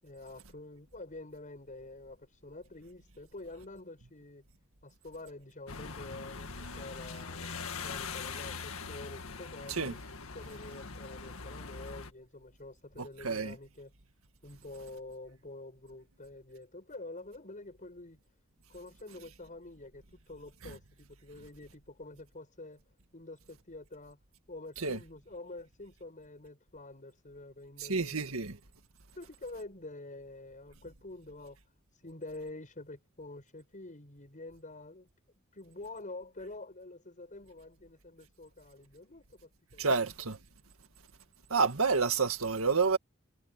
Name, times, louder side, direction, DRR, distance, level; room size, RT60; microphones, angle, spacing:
voice 1, 0.0-4.4 4.8-10.0 10.3-13.9 14.4-18.2 18.7-22.8 23.1-24.2 24.5-28.5 29.1-31.6 32.0-35.1 35.5-40.0, left 2 dB, 40° left, 6.6 m, -47 dB
sound 1, 5.7-12.1, left 4 dB, 90° left, 1.9 m, -42 dB
voice 2, 13.2-13.5 24.8-25.0 27.9-28.6 39.8-40.4 41.5-43.0, right 4 dB, 90° right, 2.0 m, -28 dB
head